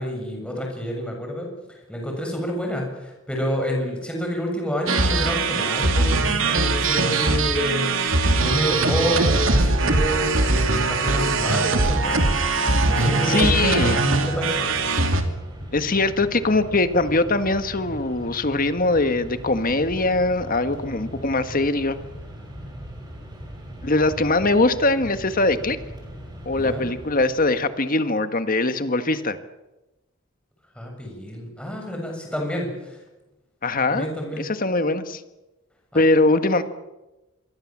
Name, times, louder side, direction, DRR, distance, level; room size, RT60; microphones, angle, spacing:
voice 1, 0.0-1.5 1.9-8.0 8.4-12.3 12.8-13.6 14.2-14.7 26.6-26.9 30.8-33.0 33.9-34.5 35.9-36.1, equal, 5° left, 1 dB, 7.0 m, -28 dB
sound 1, 4.9-15.2, right 3 dB, 70° right, 2.8 m, -21 dB
Mechanisms, 8.2-27.7, equal, 20° right, 6.8 m, -40 dB
voice 2, 13.2-14.0 15.7-22.0 23.8-25.8 26.4-29.4 33.6-35.2 35.9-36.6, left 2 dB, 45° left, 10 dB, 1.7 m, -22 dB
26.5 x 23.0 x 7.5 m, 1.0 s
head